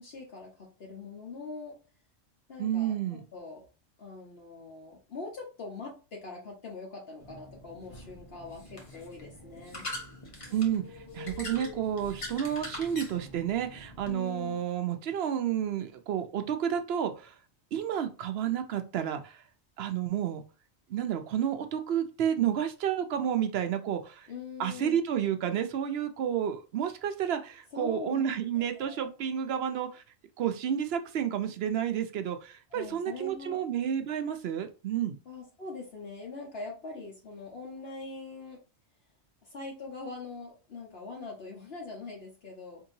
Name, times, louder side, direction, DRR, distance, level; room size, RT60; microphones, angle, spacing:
voice 1, 0.0-1.8 2.5-3.6 4.0-9.9 14.1-14.6 24.3-25.0 27.7-28.2 28.7-29.0 32.7-33.6 35.3-38.6 39.4-42.8, left 3 dB, 65° left, -2 dB, 1.2 m, -42 dB
voice 2, 2.6-3.2 10.5-17.3 17.7-19.4 19.8-20.4 20.9-24.3 24.6-30.0 30.4-35.1, right 9 dB, 70° right, 8 dB, 0.8 m, -30 dB
sound 1, 7.2-14.1, left 1 dB, 30° left, 0.8 m, -43 dB
4.4 x 2.8 x 2.7 m, 0.33 s
omnidirectional pair, 1.2 m